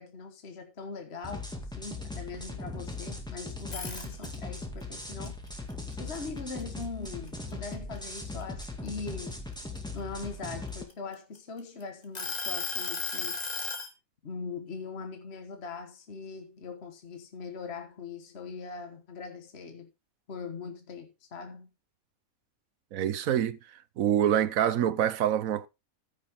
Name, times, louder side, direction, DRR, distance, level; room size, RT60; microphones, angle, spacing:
voice 1, 0.0-1.5 1.8-5.4 5.9-9.4 9.9-13.4 14.2-19.9 20.3-21.7, left 4 dB, 45° left, 1.6 m, -41 dB
sound 1, 1.2-10.8, left 2 dB, 5° left, 2.0 m, -39 dB
sound 2, 3.6-4.6 5.0-6.8 7.3-7.5 8.0-9.8 10.5-11.6 12.1-13.9, left 4 dB, 25° left, 2.1 m, -35 dB
voice 2, 22.9-23.6 24.0-25.7, right 10 dB, 70° right, 1.1 m, -26 dB
14.5 x 6.7 x 3.6 m
omnidirectional pair, 1.5 m